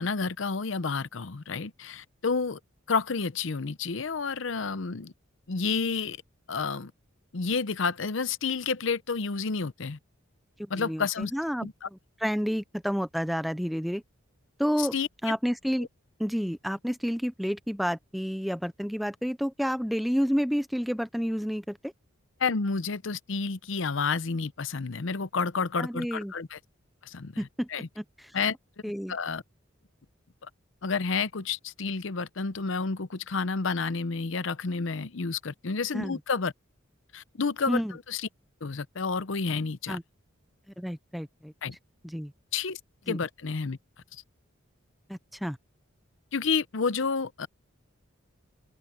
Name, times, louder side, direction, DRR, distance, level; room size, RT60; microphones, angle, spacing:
voice 1, 0.0-2.6 2.9-5.1 5.5-6.2 6.5-6.9 7.3-10.0 10.7-11.3 11.6-11.7 14.8-15.1 22.4-26.6 27.0-27.4 27.7-27.9 28.3-28.6 29.1-29.4 30.4-30.5 30.8-36.5 37.1-38.2 38.6-40.0 41.6-41.8 42.5-42.8 43.1-43.8 46.3-47.5, left 4 dB, 65° left, 0.7 m, -30 dB
voice 2, 10.6-11.7 12.2-14.0 14.6-14.9 15.2-15.9 16.2-21.9 25.8-26.3 27.4-28.3 28.8-29.1 35.9-36.2 37.7-37.9 39.9-40.0 40.8-41.5 42.0-42.3 43.1-43.2 45.1-45.6, equal, ahead, 0.4 m, -30 dB
open air
head